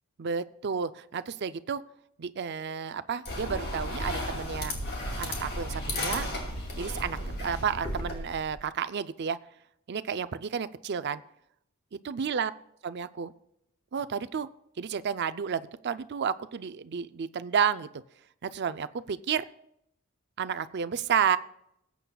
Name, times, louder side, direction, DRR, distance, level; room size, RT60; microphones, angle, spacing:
voice 1, 0.2-1.8 2.2-4.7 5.2-6.3 6.8-9.4 9.9-11.2 12.0-12.5 12.8-13.3 13.9-14.5 14.8-17.9 18.4-19.5 20.4-21.4, right 7 dB, 55° right, 13 dB, 0.5 m, -31 dB
sound 1, 3.3-8.6, left 1 dB, 50° left, 2.4 m, -34 dB
19.5 x 8.4 x 2.3 m, 0.75 s
head